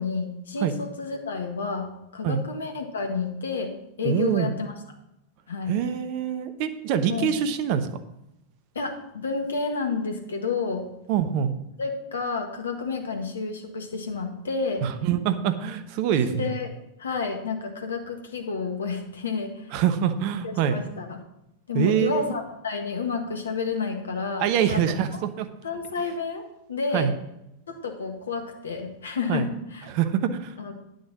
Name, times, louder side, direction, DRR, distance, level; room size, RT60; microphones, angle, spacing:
voice 1, 0.0-4.7 5.5-5.8 7.1-7.3 8.7-10.9 11.8-14.8 16.1-16.7 17.0-19.6 20.4-21.2 21.7-24.8 25.6-27.1 27.7-29.9 30.6-30.7, left 4 dB, 70° left, 5 dB, 1.6 m, -30 dB
voice 2, 4.0-4.5 5.7-7.9 11.1-11.5 14.8-16.5 19.7-20.8 21.7-22.3 24.4-25.5 26.9-27.1 29.3-29.5 29.9-30.5, right 9 dB, 45° right, 10 dB, 0.9 m, -25 dB
10.0 x 6.4 x 6.1 m, 0.85 s
figure-of-eight pair, 90°, 0 cm